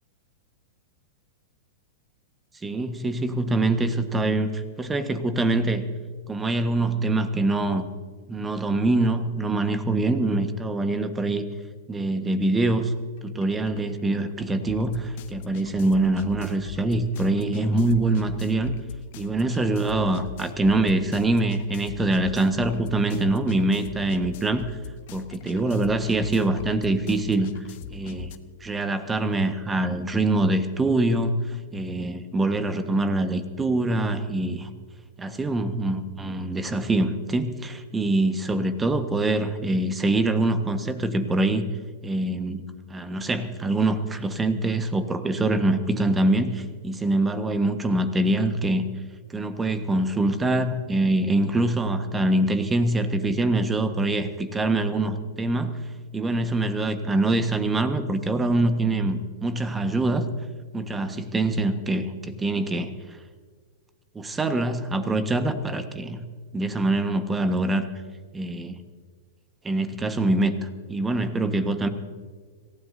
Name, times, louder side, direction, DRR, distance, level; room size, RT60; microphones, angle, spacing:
voice 1, 2.6-5.8 6.3-7.9 8.3-11.4 11.9-12.9 13.2-18.7 19.2-24.8 25.1-27.5 27.9-28.3 28.6-34.7 35.2-41.7 42.0-42.6 42.9-48.8 49.3-55.7 56.1-60.2 60.7-62.9 64.1-66.2 66.5-67.9 68.3-68.8 69.6-71.9, right 2 dB, 15° right, 9 dB, 1.4 m, -24 dB
sound 1, 12.7-12.8 13.2-28.4, left 9 dB, 55° left, 0.9 m, -42 dB
26.0 x 16.0 x 2.7 m, 1.5 s
figure-of-eight pair, 100°, 0 cm